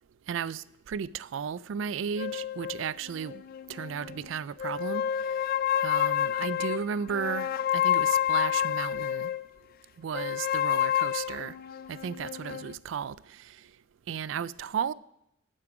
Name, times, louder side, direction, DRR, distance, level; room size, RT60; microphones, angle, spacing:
voice 1, 0.3-3.4 3.7-5.0 5.8-9.3 10.0-11.6 11.9-13.7 14.1-14.9, right 7 dB, 65° right, 0.3 m, -34 dB
sound 1, 2.2-4.2 4.6-9.4 10.1-12.7, left 10 dB, 45° left, 0.3 m, -29 dB
11.5 x 8.7 x 4.8 m
head